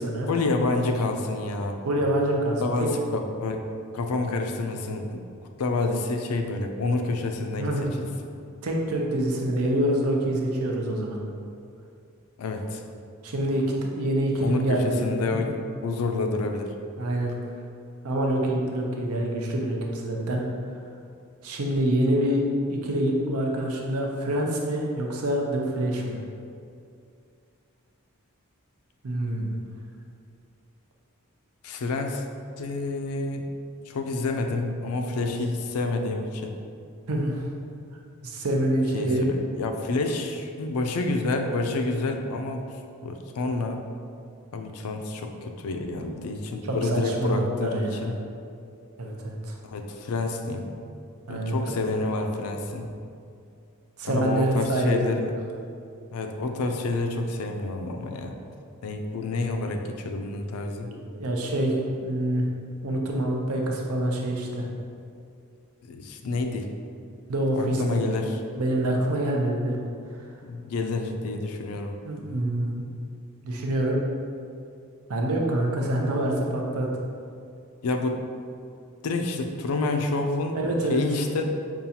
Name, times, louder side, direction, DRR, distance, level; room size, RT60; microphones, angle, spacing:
voice 1, 0.3-1.8 2.6-3.6 3.9-5.3 5.6-7.7 12.4-12.8 14.4-15.6 15.8-16.7 31.6-32.2 32.6-33.5 33.9-36.6 38.9-42.7 43.0-43.8 44.5-48.2 49.6-50.7 51.3-52.9 54.1-55.3 56.1-58.4 58.8-60.9 65.8-66.7 67.5-68.4 70.4-72.0 77.8-78.2 79.0-80.6 80.9-81.4, left 3 dB, 80° left, 5 dB, 0.4 m, -28 dB
voice 2, 1.8-2.9 7.6-8.0 8.6-11.2 13.2-13.7 13.9-15.5 17.0-17.3 18.0-20.4 21.4-26.2 29.0-29.6 35.2-35.3 37.1-37.4 38.2-39.2 46.7-48.1 49.0-49.6 51.3-51.8 54.0-55.1 60.9-62.5 62.8-64.7 67.3-68.3 68.6-69.8 72.0-72.9 73.4-74.0 75.1-76.9 80.5-81.0, right 1 dB, 80° right, 0 dB, 0.6 m, -26 dB
5.4 x 2.4 x 2.7 m, 2.4 s
head